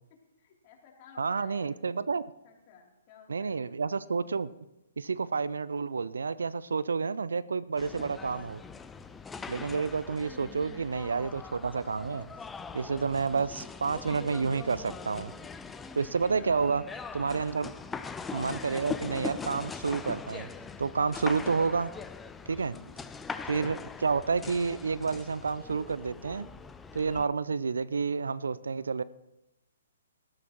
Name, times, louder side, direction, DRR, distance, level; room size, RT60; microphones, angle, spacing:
voice 1, 0.4-1.7 2.4-3.6 10.3-10.9 16.2-16.7 17.5-17.7 22.5-22.9, left 6 dB, 35° left, 0 dB, 3.0 m, -56 dB
voice 2, 1.2-2.3 3.3-4.5 5.0-8.6 9.5-12.3 12.7-15.3 16.0-16.8 17.1-17.7 18.3-20.5 20.8-21.9 22.5-22.7 23.4-26.5 26.9-29.0, right 5 dB, 65° right, 17 dB, 0.4 m, -30 dB
sound 1, 7.8-27.3, left 4 dB, 10° left, 0.5 m, -42 dB
19.5 x 12.5 x 3.0 m, 0.93 s
figure-of-eight pair, 120°, 0 cm